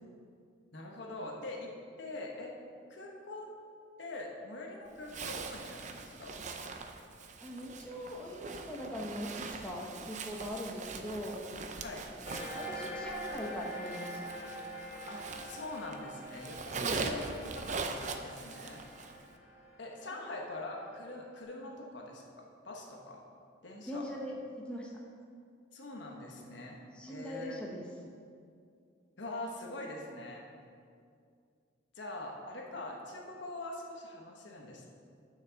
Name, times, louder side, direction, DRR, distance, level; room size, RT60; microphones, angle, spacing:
voice 1, 0.7-1.7 2.0-2.5 2.9-3.5 4.0-6.5 11.8-12.0 15.1-17.3 17.7-18.8 19.8-23.2 23.6-24.0 25.7-26.8 27.1-27.6 29.2-30.4 31.9-34.9, left 2 dB, 65° left, -1 dB, 1.2 m, -43 dB
Zipper (clothing), 5.1-16.0 16.3-19.2, right 4 dB, 40° right, 0.5 m, -42 dB
voice 2, 7.4-11.4 12.5-14.3 16.8-17.1 20.2-20.5 23.9-24.9 26.9-27.8, equal, 5° left, -3 dB, 0.9 m, -41 dB
sound 1, 12.2-21.2, equal, 35° left, 1.6 m, -45 dB
7.4 x 6.1 x 7.0 m, 2.3 s
head